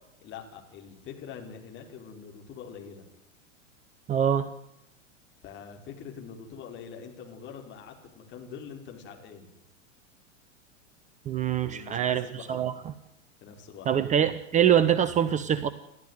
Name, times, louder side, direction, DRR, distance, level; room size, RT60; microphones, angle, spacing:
voice 1, 0.2-3.0 5.4-9.5 11.6-12.7 13.4-13.9, left 7 dB, 30° left, 2 dB, 5.0 m, -44 dB
voice 2, 4.1-4.5 11.3-12.2 12.5-12.7 13.9-15.7, right 9 dB, 20° right, 15 dB, 0.9 m, -24 dB
29.5 x 12.5 x 9.3 m, 0.87 s
figure-of-eight pair, 95°, 38 cm